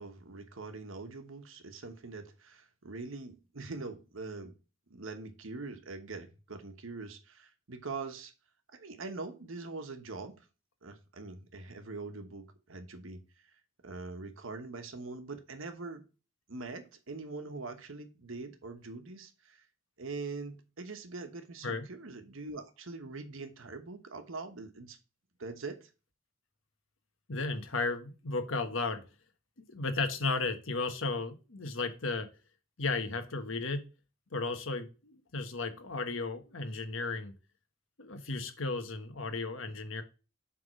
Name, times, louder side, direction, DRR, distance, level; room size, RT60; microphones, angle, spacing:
voice 1, 0.0-4.6 4.9-8.3 8.7-10.5 10.8-13.5 13.8-16.0 16.5-19.6 20.0-25.0 25.4-25.9, right 3 dB, 75° right, 1.2 m, -43 dB
voice 2, 27.3-29.0 29.7-32.3 32.8-33.8 34.3-37.3 38.0-40.0, left 3 dB, 75° left, 1.3 m, -34 dB
7.6 x 3.6 x 6.3 m
head